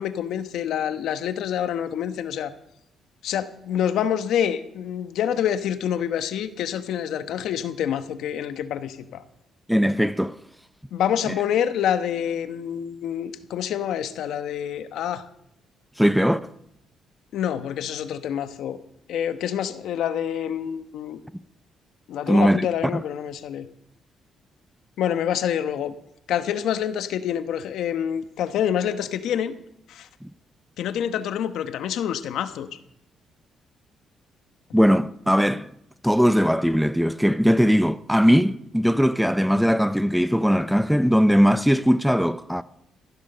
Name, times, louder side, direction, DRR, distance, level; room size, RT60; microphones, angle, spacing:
voice 1, 0.0-2.5 3.2-9.2 10.9-15.2 17.3-18.8 19.1-21.2 22.1-23.7 25.0-25.9 26.3-29.5 29.9-30.1 30.8-32.7, left 9 dB, 80° left, 1.0 m, -27 dB
voice 2, 9.7-10.4 16.0-16.5 22.3-22.7 22.9-23.0 30.2-30.3 34.7-35.7 36.0-42.6, equal, ahead, 0.5 m, -20 dB
15.0 x 11.0 x 6.7 m
cardioid pair, 90°, 0 cm